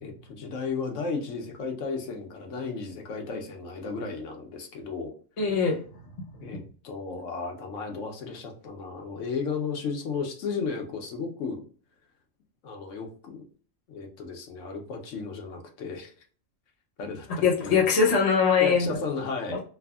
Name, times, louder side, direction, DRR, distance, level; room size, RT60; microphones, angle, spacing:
voice 1, 0.0-5.1 6.4-11.6 12.6-13.4 13.9-16.1 17.0-17.3 17.6-17.9 18.6-19.6, left 4 dB, 80° left, 3 dB, 1.0 m, -34 dB
voice 2, 5.4-5.8 6.4-6.6 17.3-19.0 19.5-19.6, left 5 dB, 35° left, -1 dB, 0.7 m, -22 dB
3.3 x 2.0 x 2.2 m, 0.42 s
omnidirectional pair, 1.3 m